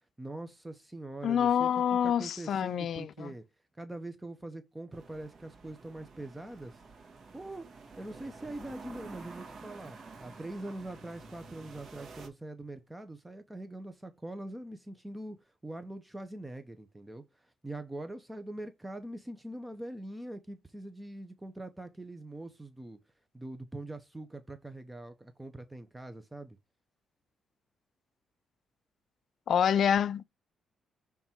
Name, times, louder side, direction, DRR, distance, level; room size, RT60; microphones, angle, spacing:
voice 1, 0.2-3.4 3.8-6.8 7.3-7.7 8.0-15.4 15.6-23.0 23.3-26.6, right 1 dB, 10° right, 0.8 m, -43 dB
voice 2, 1.2-3.3 29.5-30.2, left 8 dB, 60° left, 0.4 m, -27 dB
sound 1, 4.9-12.3, right 4 dB, 45° right, 1.9 m, -50 dB
7.2 x 3.5 x 4.4 m
cardioid pair, 100°, 0 cm